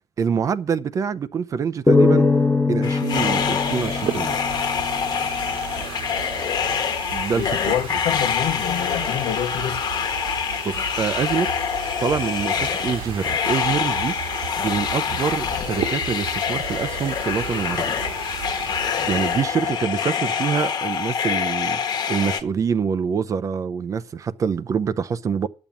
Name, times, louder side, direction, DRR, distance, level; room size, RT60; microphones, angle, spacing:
voice 1, 0.2-2.3 2.7-4.4 7.1-7.5 10.6-11.7 12.0-14.1 14.6-17.9 18.9-25.5, right 6 dB, 35° right, 0.6 m, -25 dB
sound 1, 1.9-5.3, left 3 dB, 10° left, 1.0 m, -21 dB
sound 2, 2.8-22.4, left 7 dB, 45° left, 1.3 m, -26 dB
sound 3, 3.1-19.9, right 8 dB, 65° right, 1.4 m, -35 dB
voice 2, 7.4-9.8, left 11 dB, 65° left, 0.8 m, -27 dB
10.5 x 7.2 x 7.2 m
cardioid pair, 135°, 10 cm